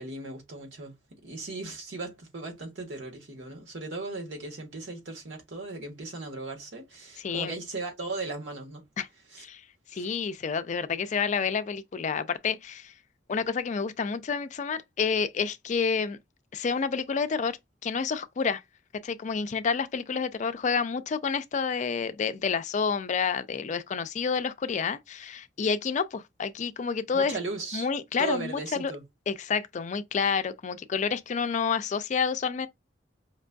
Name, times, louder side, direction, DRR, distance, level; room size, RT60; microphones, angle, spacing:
voice 1, 0.0-8.9 9.3-9.4 9.9-10.1 27.1-27.9 28.2-29.0, right 3 dB, 90° right, 1.4 m, -37 dB
voice 2, 7.2-7.5 9.0-9.1 9.4-9.6 9.9-12.9 13.3-16.2 16.5-18.6 19.0-27.4 27.7-28.9 29.3-32.7, left 5 dB, 40° left, 0.4 m, -29 dB
5.1 x 2.5 x 2.2 m
head